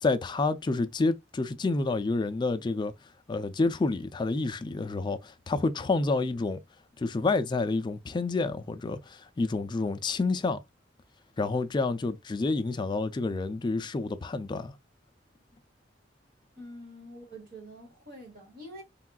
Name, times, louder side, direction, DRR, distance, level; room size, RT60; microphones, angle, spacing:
voice 1, 0.0-2.9 3.3-6.6 7.0-10.6 11.4-14.7, left 3 dB, 25° left, 0.3 m, -29 dB
voice 2, 16.5-18.8, equal, 55° right, 1.3 m, -46 dB
3.5 x 2.3 x 2.3 m
head